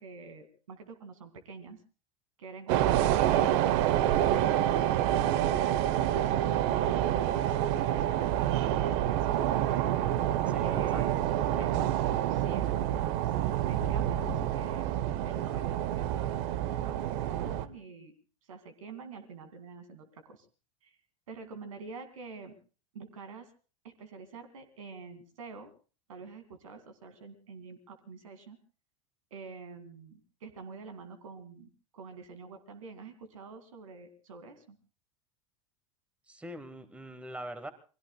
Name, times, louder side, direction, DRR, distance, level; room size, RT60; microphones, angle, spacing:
voice 1, 0.0-1.8 2.4-9.4 10.2-11.2 11.6-11.8 12.3-13.2 13.7-14.9 15.2-18.1 18.5-20.5 20.8-21.0 21.3-22.6 22.9-23.5 23.8-25.7 26.1-28.6 29.3-34.8, right 4 dB, 75° right, 8 dB, 2.4 m, -47 dB
sound 1, 2.7-17.7, right 12 dB, 55° right, 0.9 m, -28 dB
sound 2, 9.3-14.9, left 7 dB, 80° left, 2.9 m, -47 dB
voice 2, 10.5-11.0 11.4-12.0 36.3-37.7, right 1 dB, 5° right, 11 dB, 1.4 m, -43 dB
29.0 x 21.5 x 2.3 m, 0.36 s
hypercardioid pair, 85°, 17 cm